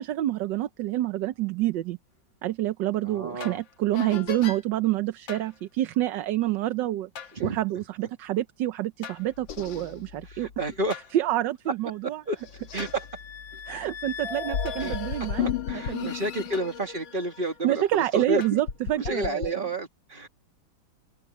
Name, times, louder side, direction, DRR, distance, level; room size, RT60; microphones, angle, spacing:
voice 1, 0.0-2.0 2.4-10.5 11.1-12.2 13.6-16.1 17.6-19.7, right 14 dB, 75° right, 1.4 m, -28 dB
voice 2, 3.0-3.6 7.3-7.6 10.3-11.0 12.3-12.4 12.7-13.0 14.8-15.0 15.4-18.6 18.9-20.3, right 1 dB, 25° right, 2.5 m, -31 dB
sound 1, 3.4-3.6 3.9-4.6 5.3-5.5 7.2-7.3 9.0-11.1 11.7-11.8 12.4-18.1 18.4-19.5, left 8 dB, 85° left, 2.2 m, -35 dB
omnidirectional pair, 2.0 m